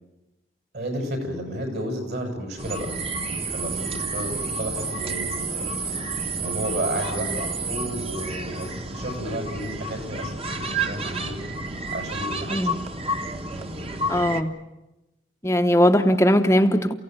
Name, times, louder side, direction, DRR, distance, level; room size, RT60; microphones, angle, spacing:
voice 1, 0.7-2.9 3.3-11.4 11.9-12.9, right 1 dB, 60° right, 4 dB, 7.0 m, -32 dB
sound 1, 2.6-14.4, right 2 dB, 30° right, 1.4 m, -30 dB
voice 2, 14.1-14.5 15.4-16.9, equal, 15° left, 5 dB, 0.9 m, -19 dB
29.0 x 16.5 x 9.2 m, 0.99 s
head